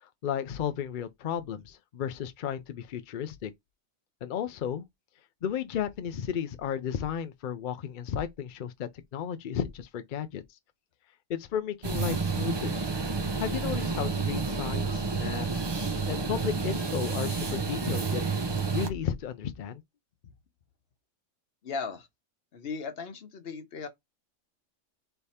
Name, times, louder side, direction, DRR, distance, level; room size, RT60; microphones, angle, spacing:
voice 1, 0.0-3.5 4.2-4.9 5.4-10.4 11.3-12.8 13.4-15.6 16.1-18.2 18.7-19.8, left 8 dB, 65° left, 0.5 m, -34 dB
sound 1, 11.8-18.9, right 4 dB, 40° right, 0.3 m, -30 dB
voice 2, 21.6-22.1 22.5-23.9, left 5 dB, 50° left, 1.0 m, -37 dB
3.4 x 3.4 x 4.2 m
omnidirectional pair, 1.4 m